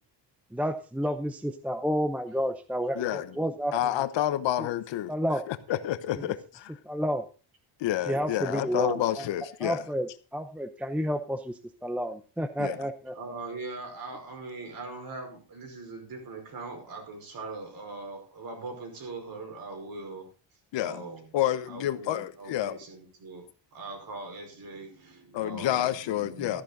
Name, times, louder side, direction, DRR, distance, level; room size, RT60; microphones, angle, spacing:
voice 1, 0.5-3.7 4.6-4.7 5.1-5.4 6.8-7.2 8.1-9.3 9.6-13.1, equal, 5° right, 0.7 m, -30 dB
voice 2, 2.9-3.3 3.7-5.1 5.5-6.7 7.8-9.8 12.6-12.8 20.7-22.8 25.3-26.6, left 12 dB, 75° left, 1.1 m, -29 dB
voice 3, 13.1-20.3 20.8-21.3 21.7-23.4 23.7-26.6, right 3 dB, 50° right, 5.2 m, -41 dB
13.5 x 10.5 x 3.9 m
cardioid pair, 140°, 44 cm